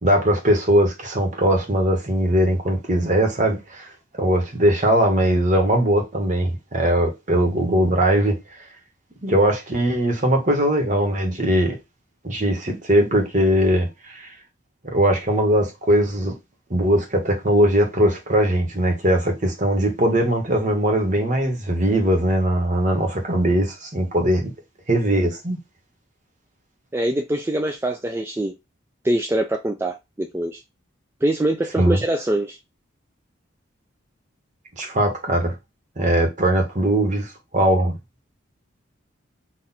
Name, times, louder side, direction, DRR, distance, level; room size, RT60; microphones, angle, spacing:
voice 1, 0.0-3.9 4.2-8.4 9.2-11.7 12.2-14.3 14.8-16.3 16.7-24.5 24.9-25.6 31.8-32.0 34.8-35.5 36.0-37.9, right 1 dB, 40° right, 1.2 m, -20 dB
voice 2, 26.9-28.5 29.0-30.6 31.2-32.6, right 1 dB, 10° right, 0.3 m, -23 dB
4.1 x 2.5 x 4.1 m
head